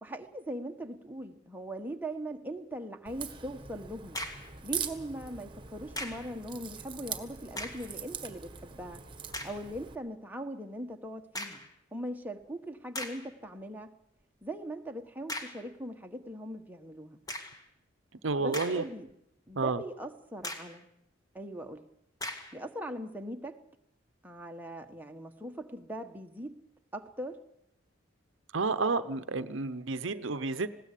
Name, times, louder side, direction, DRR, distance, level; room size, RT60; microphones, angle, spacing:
voice 1, 0.0-4.2 4.6-9.0 9.4-11.6 11.9-13.9 14.4-17.2 18.4-19.1 19.5-20.9 21.3-21.9 22.5-23.6 24.2-26.5 26.9-27.4, right 1 dB, 10° right, 4 dB, 1.4 m, -40 dB
Crack, 3.1-10.0, right 7 dB, 25° right, 1.6 m, -42 dB
sound 1, 4.1-4.6 6.0-6.3 7.5-7.9 8.5-8.6 9.3-9.6 11.3-11.7 12.4-12.5 12.9-13.3 15.3-15.7 17.3-17.6 18.3-19.1 19.5-19.6 20.4-20.8 22.2-22.6, left 1 dB, 20° left, 2.1 m, -39 dB
voice 2, 18.2-18.8 19.6-19.8 28.5-30.7, right 3 dB, 65° right, 13 dB, 0.8 m, -30 dB
20.0 x 17.0 x 8.4 m, 0.80 s
head